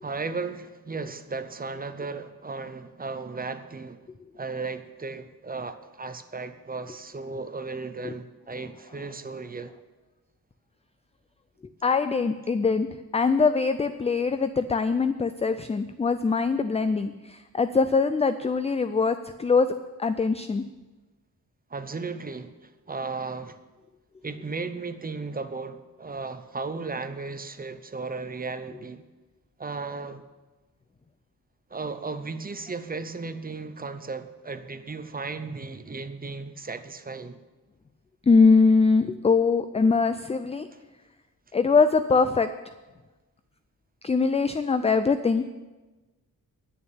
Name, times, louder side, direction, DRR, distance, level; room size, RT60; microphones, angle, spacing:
voice 1, 0.0-4.0 4.3-9.7 21.7-23.6 24.2-29.0 29.6-30.2 31.7-37.4 40.7-40.8, right 4 dB, 25° right, 10 dB, 0.7 m, -35 dB
voice 2, 11.8-12.9 13.1-19.7 20.0-20.6 38.3-40.7 41.5-42.5 44.0-45.5, left 4 dB, 20° left, 11 dB, 0.3 m, -22 dB
10.5 x 6.9 x 8.7 m, 1.2 s
wide cardioid pair, 135°, 36 cm